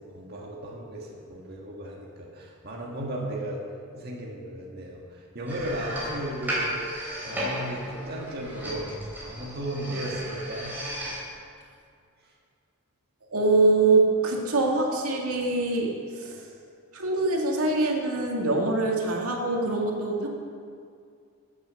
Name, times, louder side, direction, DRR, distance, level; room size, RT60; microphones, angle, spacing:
voice 1, 0.0-3.6 3.9-6.7 7.2-8.9 9.2-10.7, right 1 dB, 45° right, -2 dB, 1.7 m, -35 dB
sound 1, 5.5-11.2, equal, 10° right, 3.7 m, -34 dB
voice 2, 13.3-16.4 16.9-20.3, right 2 dB, 85° right, 0 dB, 2.1 m, -24 dB
14.5 x 8.0 x 6.6 m, 2.3 s
head